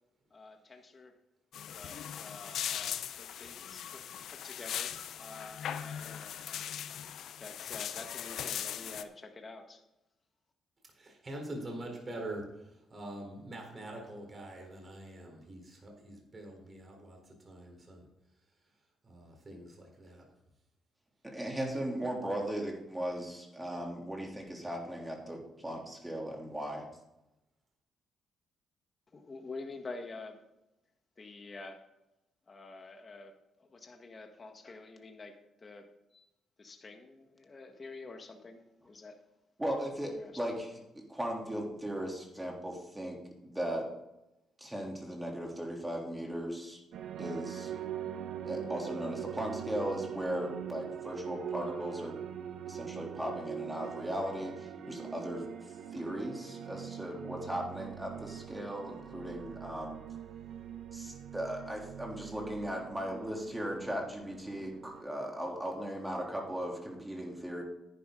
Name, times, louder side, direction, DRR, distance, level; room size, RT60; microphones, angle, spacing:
voice 1, 0.3-1.1 1.7-6.4 7.4-9.8 29.1-30.4 31.2-31.8 32.5-33.3 33.6-36.3 36.6-39.2 40.1-40.3, left 3 dB, 35° left, 4 dB, 1.8 m, -48 dB
sound 1, 1.5-9.0, left 9 dB, 75° left, 0.6 m, -39 dB
voice 2, 11.0-18.0 19.0-20.3, right 1 dB, 35° right, 1 dB, 4.1 m, -44 dB
voice 3, 21.2-26.9 39.6-40.7 40.9-43.2 43.4-43.9 44.6-46.8 47.2-47.7 48.4-52.2 52.7-55.4 55.9-60.0 60.9-67.6, equal, 10° right, -1 dB, 3.3 m, -37 dB
Not To Notice, 46.9-65.0, right 9 dB, 75° right, 1.0 m, -43 dB
11.0 x 9.9 x 3.9 m, 0.91 s
cardioid pair, 90°, 0 cm